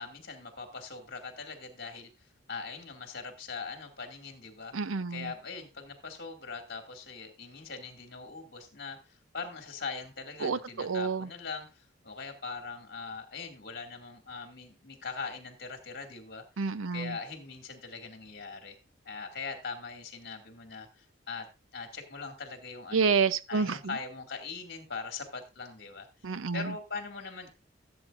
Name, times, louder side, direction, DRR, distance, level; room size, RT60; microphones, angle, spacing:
voice 1, 0.0-4.7 5.1-16.4 16.9-18.8 19.0-21.5 21.7-23.1 23.5-27.5, left 4 dB, 50° left, 2.2 m, -41 dB
voice 2, 4.7-5.3 10.4-11.3 16.6-17.1 22.9-23.9 26.2-26.7, right 5 dB, 85° right, 0.6 m, -29 dB
16.0 x 8.0 x 2.5 m
head